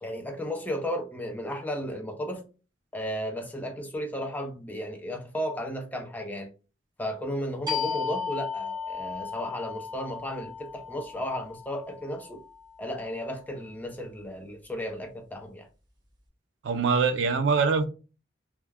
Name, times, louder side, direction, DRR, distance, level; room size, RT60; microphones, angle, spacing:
voice 1, 0.0-2.5 2.9-6.5 7.0-12.4 12.8-15.7, equal, 10° left, 0.5 m, -34 dB
sound 1, 7.7-13.0, left 6 dB, 25° right, 0.8 m, -35 dB
voice 2, 16.6-17.8, right 5 dB, 80° right, 0.4 m, -23 dB
2.2 x 2.1 x 3.3 m
head